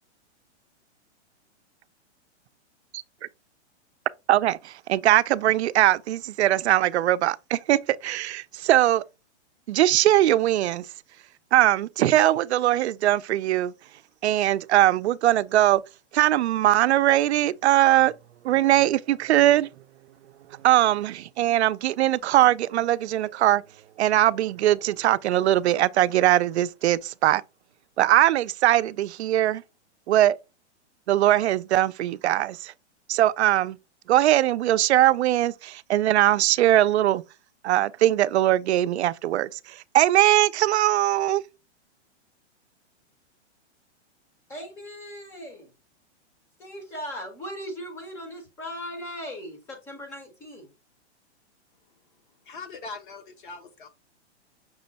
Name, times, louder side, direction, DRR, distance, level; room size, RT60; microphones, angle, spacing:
voice 1, 4.3-9.0 9.7-10.9 11.5-13.7 14.2-15.8 16.1-18.2 18.4-19.7 20.5-23.6 24.0-27.4 28.0-29.6 30.1-30.4 31.1-32.7 33.1-33.8 34.1-37.2 37.6-41.4, right 13 dB, 70° right, 0.5 m, -21 dB
voice 2, 44.5-45.7 46.6-50.7, equal, 5° left, 0.5 m, -38 dB
voice 3, 52.4-53.9, left 4 dB, 45° left, 0.6 m, -40 dB
6.1 x 2.1 x 3.9 m
hypercardioid pair, 165°, 35 cm